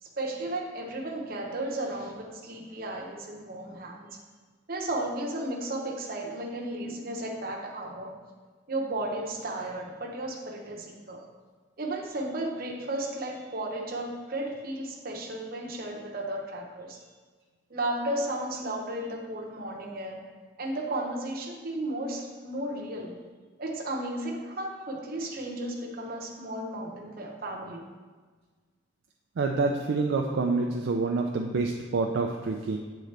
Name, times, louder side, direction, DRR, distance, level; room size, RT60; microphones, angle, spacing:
voice 1, 0.0-4.2 4.7-8.1 8.7-11.2 11.8-17.0 17.7-20.2 20.6-23.2 23.6-27.8, right 1 dB, 45° right, -1 dB, 0.8 m, -34 dB
voice 2, 29.4-32.8, right 3 dB, 60° right, 2 dB, 0.3 m, -27 dB
8.0 x 3.8 x 3.3 m, 1.4 s
head